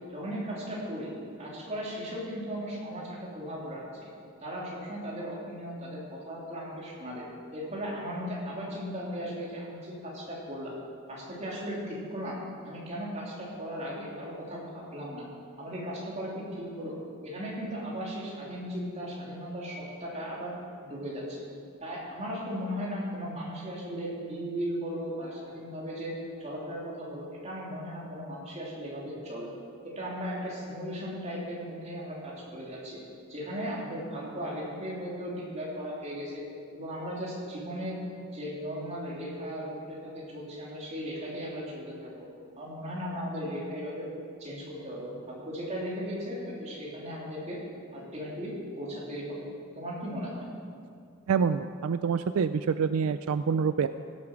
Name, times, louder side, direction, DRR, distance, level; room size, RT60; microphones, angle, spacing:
voice 1, 0.1-1.1 1.4-3.8 4.4-7.2 7.5-10.7 11.1-12.4 12.6-15.2 15.6-17.0 17.2-20.5 20.8-21.4 21.8-26.1 26.4-29.5 29.8-33.0 33.3-36.4 36.7-38.0 38.3-42.3 42.6-44.0 44.4-47.6 47.9-49.4 49.7-50.5, equal, 30° right, -5 dB, 3.2 m, -37 dB
voice 2, 51.3-53.9, right 6 dB, 75° right, 12 dB, 0.4 m, -26 dB
16.5 x 8.5 x 6.0 m, 2.3 s
head